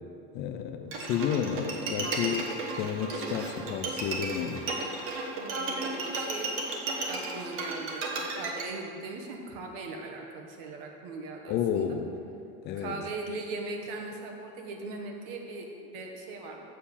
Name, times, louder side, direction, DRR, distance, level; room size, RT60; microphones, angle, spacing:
voice 1, 0.3-2.5 2.8-4.6 11.5-12.1 12.6-13.0, left 8 dB, 35° left, 7 dB, 0.4 m, -31 dB
Bowed string instrument, 0.9-8.6, right 3 dB, 40° right, 1.1 m, -34 dB
voice 2, 5.4-12.0 12.8-16.6, right 3 dB, 60° right, 2 dB, 1.3 m, -39 dB
7.3 x 4.5 x 6.8 m, 2.5 s
supercardioid pair, 155°, 33 cm